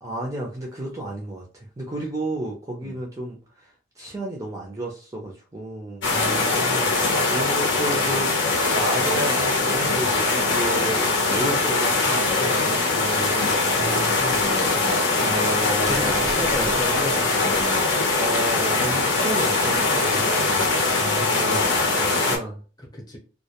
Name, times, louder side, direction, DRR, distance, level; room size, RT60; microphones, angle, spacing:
voice 1, 0.0-3.7 4.0-6.1 7.3-13.6 15.2-16.3 16.6-16.7 18.2-20.8 21.2-22.6, right 1 dB, 15° right, -1 dB, 0.4 m, -32 dB
sound 1, 6.0-22.4, left 3 dB, 85° left, 0.7 m, -22 dB
voice 2, 6.1-7.0 12.3-12.4 13.7-15.0 15.8-17.9 21.0-21.6 22.9-23.2, left 1 dB, 20° left, -1 dB, 0.7 m, -33 dB
sound 2, 19.0-22.5, left 7 dB, 60° left, 0.4 m, -41 dB
2.2 x 2.1 x 2.8 m, 0.36 s
head